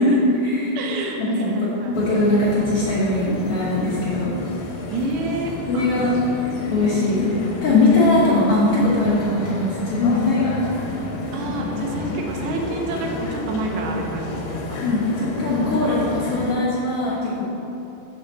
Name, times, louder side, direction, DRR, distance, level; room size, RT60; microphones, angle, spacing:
voice 1, 0.0-0.7 1.2-4.4 5.7-6.1 6.7-7.4 7.6-10.6 14.8-17.4, left 2 dB, 65° left, -9 dB, 1.4 m, -20 dB
voice 2, 0.8-2.0 4.9-6.2 6.6-6.9 11.3-14.8, right 2 dB, 75° right, 1 dB, 2.1 m, -28 dB
sound 1, 1.9-16.5, left 3 dB, 90° left, 2.7 m, -31 dB
6.1 x 4.8 x 6.6 m, 2.8 s
omnidirectional pair, 4.2 m